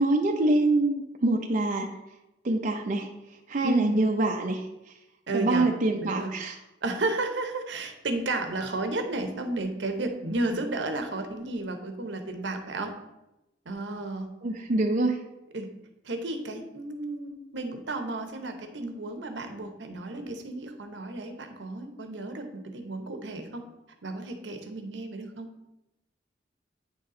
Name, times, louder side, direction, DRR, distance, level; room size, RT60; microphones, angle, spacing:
voice 1, 0.0-1.9 2.4-3.1 3.5-4.6 5.3-6.6 14.4-15.2, right 2 dB, 45° right, 1 dB, 0.5 m, -25 dB
voice 2, 3.6-4.0 5.3-5.7 6.0-6.3 6.8-12.9 13.7-14.3 15.5-15.7 16.0-23.6 24.0-25.5, right 2 dB, 75° right, 6 dB, 0.8 m, -33 dB
8.8 x 4.1 x 3.8 m, 0.94 s
head